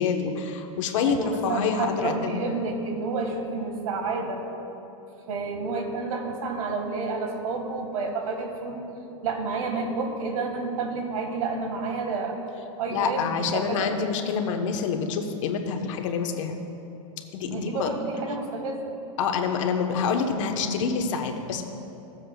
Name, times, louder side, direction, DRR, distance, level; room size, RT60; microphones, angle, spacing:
voice 1, 0.0-2.4 12.9-16.5 17.3-17.9 19.2-21.6, left 6 dB, 60° left, 5 dB, 1.0 m, -27 dB
voice 2, 1.1-4.4 5.3-8.8 9.2-12.4 12.8-14.0 17.5-19.0, right 3 dB, 75° right, 3 dB, 1.6 m, -30 dB
17.0 x 7.5 x 2.3 m, 2.9 s
supercardioid pair, 140°, 18 cm